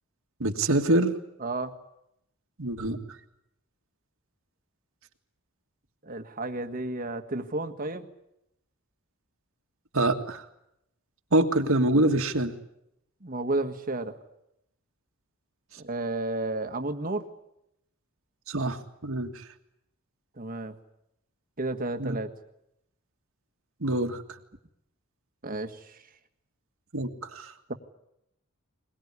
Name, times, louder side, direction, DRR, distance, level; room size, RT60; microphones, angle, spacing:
voice 1, 0.4-1.2 2.6-3.0 9.9-10.5 11.3-12.5 18.5-19.4 22.0-22.2 23.8-24.2 26.9-27.5, right 1 dB, 65° right, 5 dB, 2.0 m, -25 dB
voice 2, 1.4-1.7 6.0-8.0 13.2-14.1 15.8-17.3 20.4-20.7 21.6-22.3 25.4-25.8, right 2 dB, 40° right, 7 dB, 1.7 m, -32 dB
22.0 x 21.0 x 9.8 m, 0.82 s
head